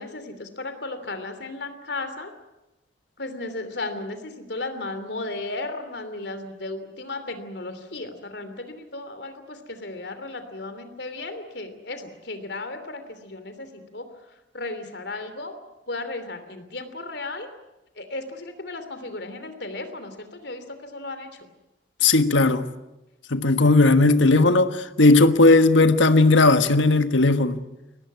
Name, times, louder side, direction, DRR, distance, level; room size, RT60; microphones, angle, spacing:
voice 1, 0.0-2.3 3.2-14.1 14.5-15.5 15.9-17.5 18.0-21.5, left 2 dB, 65° left, 3.0 m, -35 dB
voice 2, 22.0-22.7 23.3-27.6, left 2 dB, 90° left, 1.4 m, -17 dB
23.5 x 18.0 x 9.6 m
head